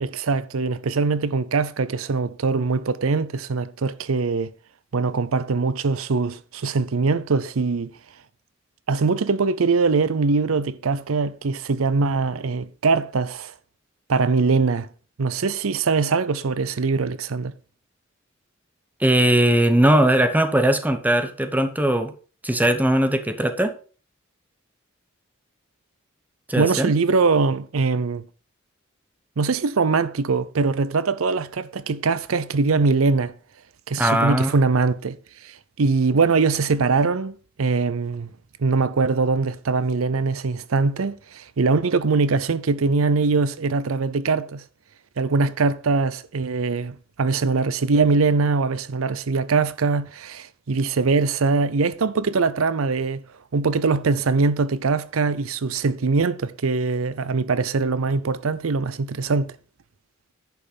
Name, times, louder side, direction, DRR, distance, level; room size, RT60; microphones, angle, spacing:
voice 1, 0.0-4.5 4.9-7.9 8.9-13.5 14.1-14.9 15.2-17.5 26.6-28.2 29.4-33.3 33.9-35.2 35.4-38.3 38.6-44.6 45.2-53.2 53.5-59.5, right 4 dB, 85° right, 0.6 m, -22 dB
voice 2, 19.0-22.1 22.4-23.7 26.5-26.9 34.0-34.5, right 1 dB, 10° right, 1.0 m, -19 dB
10.5 x 5.5 x 5.3 m
head